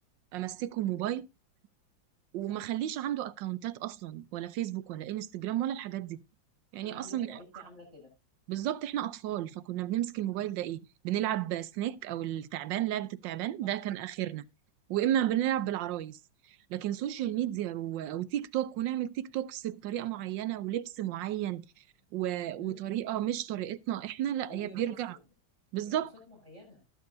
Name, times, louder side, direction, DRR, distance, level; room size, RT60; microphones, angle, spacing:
voice 1, 0.3-1.3 2.3-6.2 6.7-7.4 8.5-14.4 14.9-16.2 16.7-21.6 22.1-25.1 25.7-26.1, right 12 dB, 75° right, 1.3 m, -33 dB
voice 2, 6.8-8.1 10.3-10.5 13.6-13.7 22.6-23.0 24.5-25.2 25.8-26.8, left 2 dB, 30° right, 6.6 m, -51 dB
18.5 x 7.5 x 2.6 m
omnidirectional pair, 2.1 m